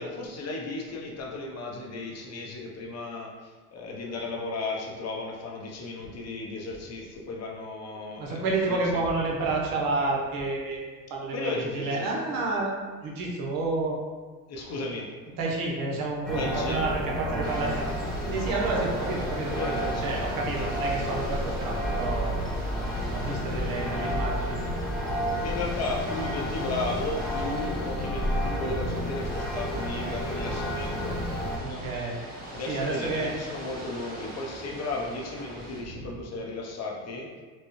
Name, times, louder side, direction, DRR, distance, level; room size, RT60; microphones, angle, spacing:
voice 1, 0.0-9.0 11.3-12.1 14.5-15.1 16.3-16.8 19.5-20.2 25.3-32.0 32.5-37.3, left 2 dB, 40° left, -2 dB, 0.7 m, -35 dB
voice 2, 8.1-10.8 11.1-12.8 13.0-14.0 15.4-17.9 18.2-22.3 23.1-24.6 31.5-32.2 32.7-33.3 36.0-36.1, right 3 dB, 55° right, -2 dB, 1.0 m, -30 dB
sound 1, 16.3-31.6, equal, ahead, 0.4 m, -31 dB
Ocean / Boat Water vehicle, 17.4-35.8, right 1 dB, 20° right, 1.2 m, -42 dB
4.4 x 2.2 x 3.0 m, 1.4 s
supercardioid pair, 90°, 41 cm